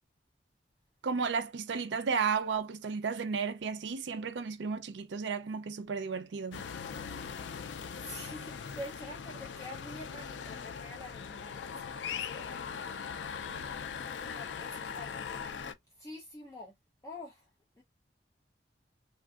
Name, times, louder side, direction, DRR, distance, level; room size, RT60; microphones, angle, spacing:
voice 1, 1.0-6.6, right 5 dB, 75° right, 0.5 m, -33 dB
sound 1, 6.5-15.7, left 6 dB, 75° left, 0.4 m, -40 dB
voice 2, 8.0-12.1 12.3-13.7 14.0-16.7 17.0-17.5 17.8-17.9, left 1 dB, 20° left, 0.5 m, -47 dB
3.3 x 2.5 x 2.3 m
head